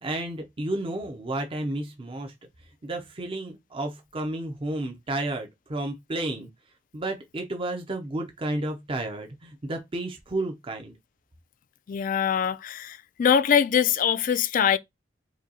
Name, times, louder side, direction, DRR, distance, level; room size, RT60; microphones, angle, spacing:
voice 1, 0.0-2.3 2.8-6.5 6.9-10.9, right 2 dB, 30° right, 0.5 m, -32 dB
voice 2, 11.9-14.8, left 8 dB, 45° left, 0.3 m, -23 dB
4.9 x 2.3 x 2.7 m
head